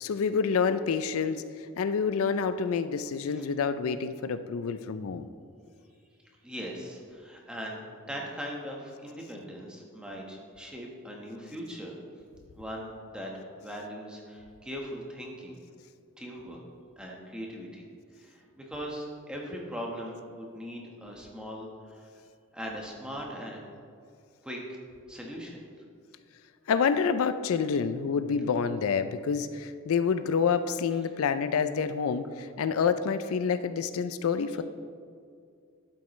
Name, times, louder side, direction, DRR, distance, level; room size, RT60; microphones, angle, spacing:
voice 1, 0.0-5.3 26.7-34.6, left 6 dB, 80° left, 11 dB, 0.4 m, -28 dB
voice 2, 6.4-7.8 8.1-11.9 12.6-15.6 16.2-16.6 17.0-17.8 18.1-22.1 22.5-23.6 24.4-24.8 25.1-25.7, equal, 5° right, -2 dB, 1.2 m, -40 dB
12.0 x 7.7 x 3.1 m, 2.3 s
head